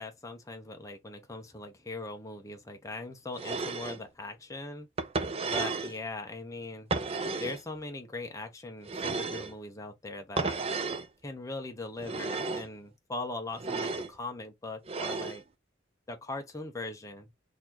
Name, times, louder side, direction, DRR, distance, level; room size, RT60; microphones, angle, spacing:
voice 1, 0.0-4.9 5.4-6.9 7.4-10.6 11.2-15.4 16.1-17.3, left 2 dB, 15° left, 0.8 m, -40 dB
sound 1, 3.4-4.0 5.0-6.0 6.9-7.6 8.9-9.5 10.4-11.1 12.0-12.7 13.6-14.1 14.9-15.4, right 3 dB, 30° right, 0.5 m, -33 dB
4.1 x 2.8 x 2.9 m
head